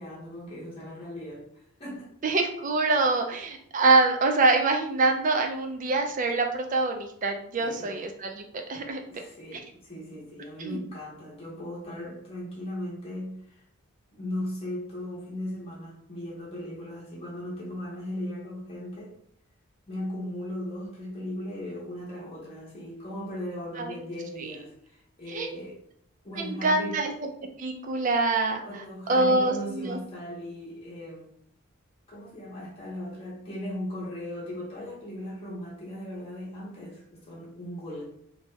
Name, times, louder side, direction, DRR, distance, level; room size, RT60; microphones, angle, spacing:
voice 1, 0.0-1.5 1.8-2.1 7.5-8.1 9.1-13.6 14.1-19.2 19.9-25.8 26.2-27.0 28.6-31.3 32.1-38.0, left 1 dB, 25° left, -5 dB, 0.8 m, -37 dB
voice 2, 2.2-9.0 9.5-9.6 10.6-10.8 23.8-23.9 24.4-24.5 25.3-25.5 26.4-27.3 27.6-28.8 29.1-30.0, right 3 dB, 35° right, 4 dB, 0.4 m, -25 dB
2.7 x 2.2 x 3.0 m, 0.67 s
head